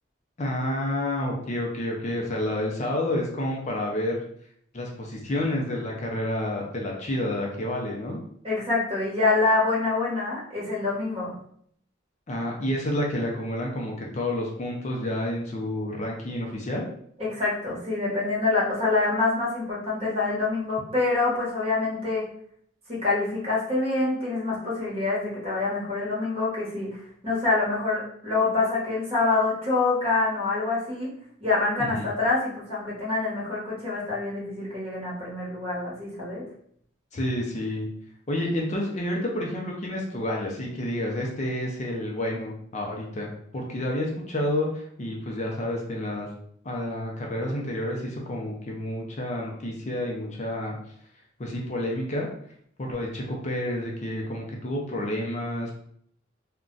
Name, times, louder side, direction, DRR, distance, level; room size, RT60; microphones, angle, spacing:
voice 1, 0.4-4.2 4.7-8.2 12.3-16.8 31.8-32.1 37.1-37.9 38.3-46.3 46.6-50.8 51.4-52.3 52.8-55.7, left 1 dB, 35° left, -1 dB, 0.5 m, -29 dB
voice 2, 8.4-11.3 17.2-22.2 22.9-31.1 31.4-36.4, left 3 dB, 30° right, -5 dB, 1.1 m, -26 dB
2.4 x 2.2 x 3.8 m, 0.66 s
head